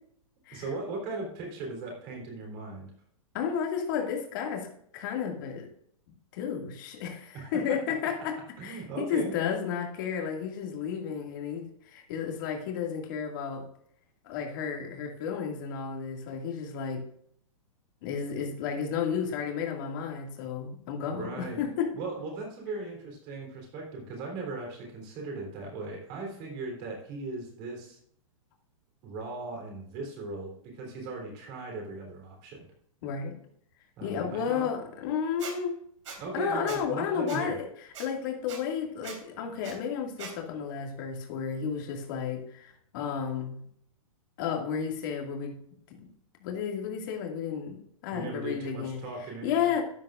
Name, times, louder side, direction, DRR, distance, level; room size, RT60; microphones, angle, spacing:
voice 1, 0.5-2.9 7.3-7.6 8.6-9.3 21.1-28.0 29.0-32.7 34.0-34.7 36.2-37.6 48.1-49.8, right 3 dB, 30° right, 1 dB, 3.6 m, -38 dB
voice 2, 3.3-4.7 4.9-5.7 6.3-13.7 14.2-17.0 18.0-21.9 33.0-33.3 34.0-35.8 36.3-37.7 38.0-43.6 44.4-45.6 45.9-46.1 46.4-49.0 49.4-49.8, left 7 dB, 35° left, 2 dB, 2.1 m, -32 dB
Squeak, 35.4-35.5 36.1-36.2 36.7-36.8 37.3-37.4 37.9-38.1 38.5-38.6 39.0-39.2 39.6-39.7 40.2-40.3, right 6 dB, 60° right, 3.5 m, -40 dB
13.0 x 9.4 x 2.5 m, 0.67 s
hypercardioid pair, 170°, 18 cm